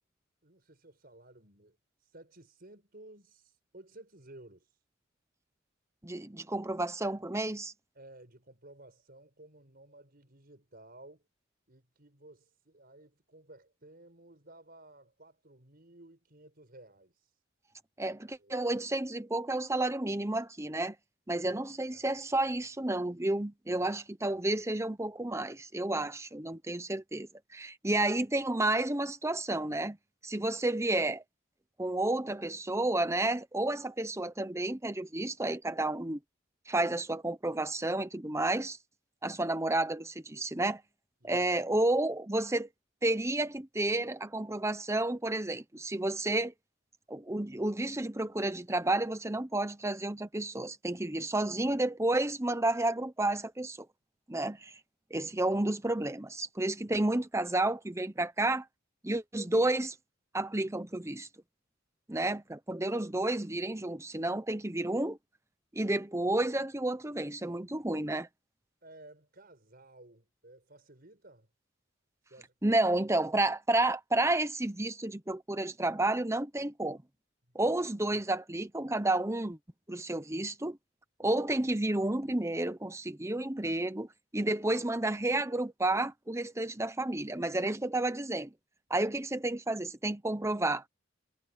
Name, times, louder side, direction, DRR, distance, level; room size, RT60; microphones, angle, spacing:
voice 1, 0.4-1.8 2.0-4.7 7.9-11.3 11.7-17.3 18.4-18.7 21.3-21.5 21.9-22.2 23.8-23.9 41.2-41.5 68.8-71.5 72.3-72.7 77.5-77.8 78.1-78.2, right 1 dB, 50° right, 6.1 m, -55 dB
voice 2, 6.0-7.7 18.0-20.9 21.3-30.0 30.2-31.2 31.8-36.2 36.7-38.8 39.2-40.8 41.2-42.7 43.0-46.5 47.1-53.9 54.3-54.8 55.1-58.6 59.0-59.9 60.3-61.3 62.1-65.2 65.7-68.3 72.6-77.0 77.5-79.6 79.9-80.8 81.2-84.1 84.3-88.5 88.9-90.8, right 2 dB, 15° right, 1.0 m, -31 dB
head